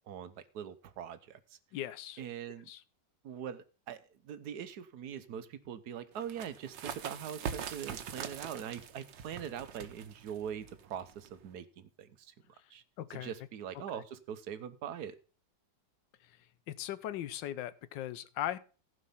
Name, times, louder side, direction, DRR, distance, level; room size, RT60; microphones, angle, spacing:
voice 1, 0.0-1.6 2.2-2.7 3.2-12.3 12.7-12.8 13.1-15.2, right 8 dB, 65° right, 12 dB, 1.3 m, -42 dB
voice 2, 1.7-2.2 2.7-2.8 13.0-13.3 16.7-18.6, left 12 dB, 80° left, 16 dB, 1.4 m, -38 dB
sound 1, 6.2-11.5, right 8 dB, 80° right, 1.6 m, -43 dB
15.0 x 5.4 x 5.5 m, 0.36 s
omnidirectional pair, 2.0 m